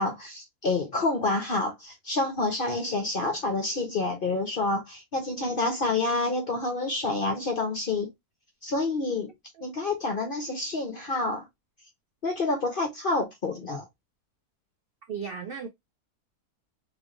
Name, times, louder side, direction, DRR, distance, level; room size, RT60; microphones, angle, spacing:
voice 1, 0.0-8.1 8.6-9.3 9.6-11.5 12.2-13.8, left 2 dB, 55° left, 0.6 m, -28 dB
voice 2, 9.2-9.6 15.1-15.7, right 6 dB, 75° right, 0.5 m, -37 dB
3.1 x 3.1 x 2.5 m
omnidirectional pair, 1.6 m